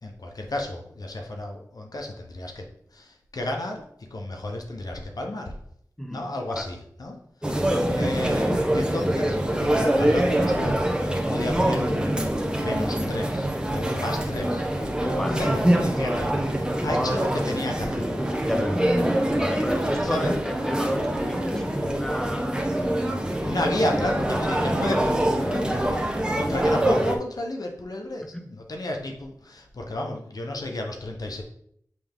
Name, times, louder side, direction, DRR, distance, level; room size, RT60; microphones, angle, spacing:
voice 1, 0.0-2.7 2.9-5.5 6.1-12.0 12.6-18.1 20.0-20.3 23.4-31.4, left 1 dB, 70° left, 2 dB, 0.9 m, -32 dB
voice 2, 6.0-6.3 6.6-6.7 7.6-8.2 15.2-15.4 18.4-22.6 23.6-23.7 28.3-28.5, left 1 dB, 10° left, 5 dB, 0.9 m, -31 dB
sound 1, 7.4-27.1, right 1 dB, 15° right, 1.2 m, -24 dB
7.7 x 3.4 x 3.6 m, 0.68 s
wide cardioid pair, 45°, 7 cm